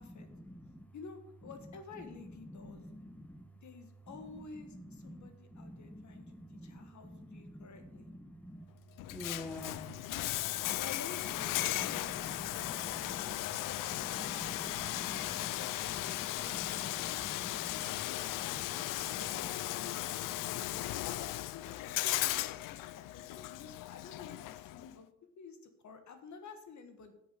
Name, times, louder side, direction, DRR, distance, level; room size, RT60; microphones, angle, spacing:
voice 1, 0.0-0.8 2.2-3.4 4.3-4.4 4.9-8.6 9.1-9.9 10.6-10.8 11.5-13.4 13.9-17.9 18.4-19.5 19.8-20.8, equal, 5° left, 8 dB, 1.2 m, -49 dB
voice 2, 0.9-2.9 3.6-8.1 10.7-12.9 13.5-15.0 15.5-17.2 17.7-18.9 19.1-20.2 20.8-25.6 25.8-27.1, left 5 dB, 60° left, 8 dB, 1.5 m, -51 dB
Bathtub (filling or washing), 9.0-24.9, left 16 dB, 80° left, 0.5 m, -37 dB
8.0 x 6.9 x 6.7 m, 0.84 s
supercardioid pair, 65°, 32 cm